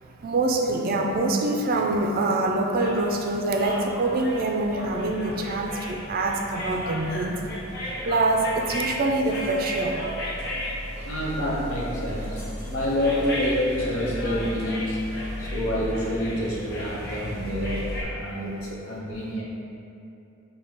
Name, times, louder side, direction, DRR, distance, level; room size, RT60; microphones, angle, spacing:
voice 1, 0.2-7.4 8.0-10.0, right 2 dB, 45° right, 2 dB, 0.4 m, -25 dB
sound 1, 2.8-18.0, equal, 50° left, 0.8 m, -34 dB
voice 2, 10.9-19.4, equal, 90° left, -5 dB, 0.9 m, -28 dB
5.4 x 2.2 x 3.4 m, 2.7 s
head